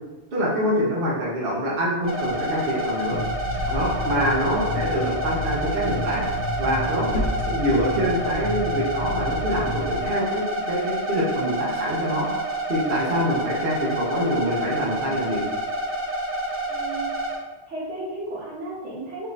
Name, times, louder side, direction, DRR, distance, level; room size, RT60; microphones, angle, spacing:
voice 1, 0.3-3.2 3.7-6.3 6.6-7.1 7.4-12.3 12.7-15.4, equal, 55° right, -5 dB, 1.0 m, -25 dB
sound 1, 2.0-8.3, left 1 dB, 90° left, 1.1 m, -36 dB
sound 2, 2.0-17.4, right 1 dB, 15° right, 0.4 m, -28 dB
sound 3, 3.1-10.1, left 2 dB, 70° left, 0.8 m, -31 dB
voice 2, 16.7-17.1 17.7-19.3, right 2 dB, 80° right, -6 dB, 1.6 m, -34 dB
4.6 x 2.5 x 3.2 m, 1.2 s
omnidirectional pair, 1.2 m